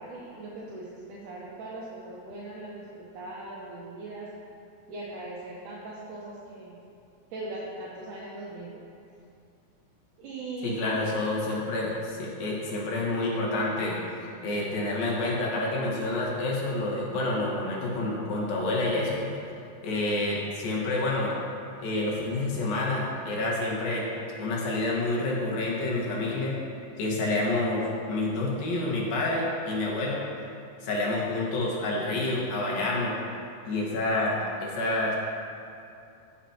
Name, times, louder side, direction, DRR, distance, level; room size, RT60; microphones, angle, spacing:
voice 1, 0.0-4.3 4.9-6.8 7.3-8.8 10.2-11.2 12.4-12.6, right 2 dB, 70° right, -5 dB, 2.2 m, -39 dB
voice 2, 10.6-19.3 19.8-21.3 21.8-24.1 24.4-26.5 27.0-30.2 30.8-33.1 33.6-35.2, left 2 dB, 75° left, -4 dB, 3.3 m, -28 dB
15.5 x 7.1 x 2.9 m, 2.5 s
omnidirectional pair, 4.3 m